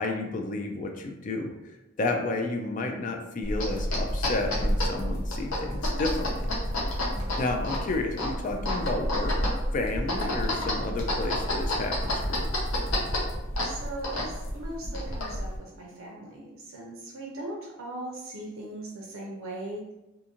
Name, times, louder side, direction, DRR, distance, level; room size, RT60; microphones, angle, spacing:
voice 1, 0.0-1.5 2.0-6.4 7.4-9.4 9.7-12.5, left 2 dB, 35° left, 3 dB, 0.3 m, -31 dB
sound 1, 3.4-15.6, left 1 dB, 70° left, 0.7 m, -29 dB
voice 2, 7.1-7.8 13.6-19.9, right 1 dB, 75° right, -3 dB, 0.5 m, -39 dB
2.5 x 2.5 x 2.8 m, 0.96 s
head